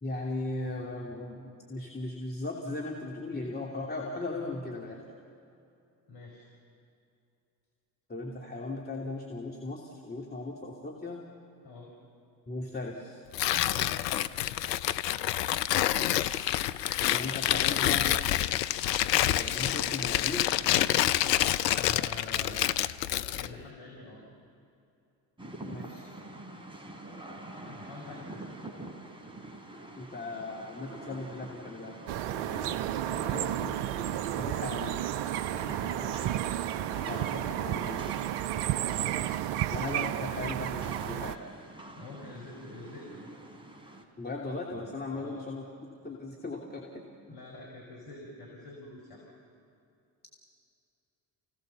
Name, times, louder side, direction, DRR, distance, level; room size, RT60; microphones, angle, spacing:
voice 1, 0.0-5.0 8.1-11.2 12.5-13.2 17.0-18.2 19.3-20.5 25.6-26.1 30.0-32.0 33.3-33.7 34.2-35.0 37.1-38.1 39.7-41.4 44.2-45.6 46.0-47.1, left 2 dB, 20° left, -2 dB, 3.0 m, -37 dB
voice 2, 6.1-6.5 11.6-11.9 13.7-14.0 21.6-22.7 23.1-24.2 27.7-28.5 32.4-32.7 33.1-33.7 35.5-36.4 38.8-39.2 42.0-43.3 45.1-45.5 47.3-49.2, left 2 dB, 55° left, -2 dB, 5.2 m, -46 dB
Tearing, 13.3-23.5, left 13 dB, 75° left, 0.7 m, -27 dB
Rain, 25.4-44.0, right 1 dB, 10° right, 3.5 m, -46 dB
sound 1, 32.1-41.4, right 13 dB, 60° right, 0.9 m, -32 dB
30.0 x 17.5 x 7.1 m, 2.6 s
figure-of-eight pair, 55°, 49 cm